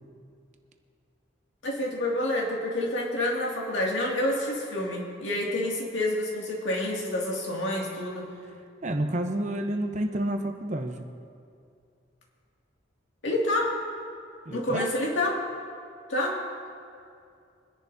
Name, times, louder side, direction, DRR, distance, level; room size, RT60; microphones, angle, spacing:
voice 1, 1.6-8.3 13.2-13.8 14.5-15.4 16.1-16.4, left 1 dB, 75° left, -2 dB, 2.2 m, -28 dB
voice 2, 8.8-11.1 14.5-14.9, right 1 dB, 40° right, 5 dB, 0.8 m, -29 dB
24.0 x 10.5 x 2.7 m, 2.4 s
head